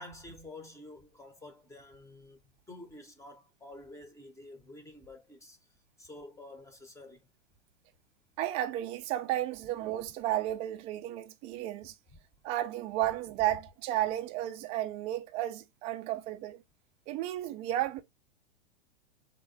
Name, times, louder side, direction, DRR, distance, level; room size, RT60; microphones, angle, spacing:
voice 1, 0.0-2.4 2.7-5.6 6.0-7.3 12.1-12.2, left 2 dB, 10° left, 0.7 m, -49 dB
voice 2, 8.4-11.9 12.4-16.6 17.1-18.0, right 13 dB, 20° right, 0.3 m, -33 dB
3.8 x 3.0 x 3.7 m
hypercardioid pair, 110°, 37 cm